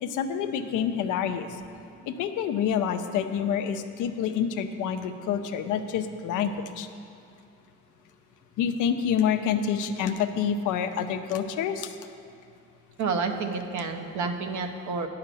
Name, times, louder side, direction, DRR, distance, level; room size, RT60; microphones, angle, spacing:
voice 1, 0.0-1.6 2.1-6.9 8.6-12.0, left 8 dB, 90° left, 8 dB, 0.6 m, -27 dB
voice 2, 13.0-15.1, right 4 dB, 70° right, 5 dB, 0.9 m, -29 dB
8.9 x 5.8 x 6.8 m, 2.7 s
cardioid pair, 90°, 30 cm